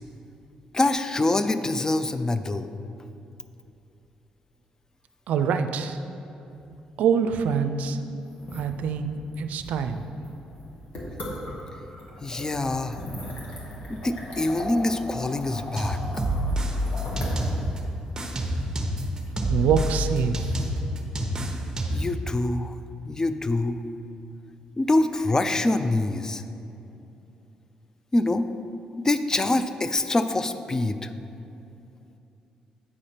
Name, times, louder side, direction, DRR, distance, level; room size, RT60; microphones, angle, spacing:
voice 1, 0.7-2.7 12.2-13.0 13.9-16.0 21.9-22.7 23.1-23.8 24.8-26.4 28.1-28.5 29.0-31.1, left 2 dB, 25° left, 11 dB, 0.4 m, -25 dB
voice 2, 5.3-6.0 7.0-8.0 8.5-10.1 19.5-20.3, right 7 dB, 80° right, 9 dB, 0.4 m, -25 dB
sound 1, 8.3-20.2, equal, 65° left, 1.7 m, -38 dB
sound 2, 15.8-17.8 18.2-22.2, equal, 25° right, 0.9 m, -27 dB
8.5 x 4.9 x 4.3 m, 2.7 s
cardioid pair, 80°, 2 cm